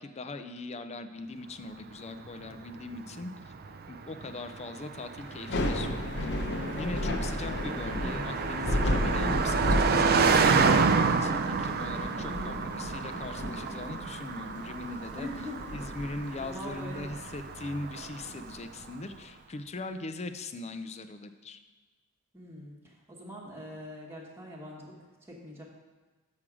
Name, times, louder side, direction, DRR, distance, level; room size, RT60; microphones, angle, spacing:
voice 1, 0.0-3.3 3.9-6.3 6.7-15.3 15.7-21.6, left 2 dB, 30° left, 9 dB, 0.4 m, -40 dB
Car passing by, 2.2-18.6, right 5 dB, 45° right, 0.4 m, -30 dB
Thunder / Rain, 5.3-18.5, left 1 dB, 55° left, 0.7 m, -34 dB
voice 2, 12.1-12.6 15.1-15.6 16.4-17.1 22.3-25.6, equal, 10° right, -4 dB, 1.1 m, -43 dB
7.2 x 6.1 x 4.9 m, 1.3 s
head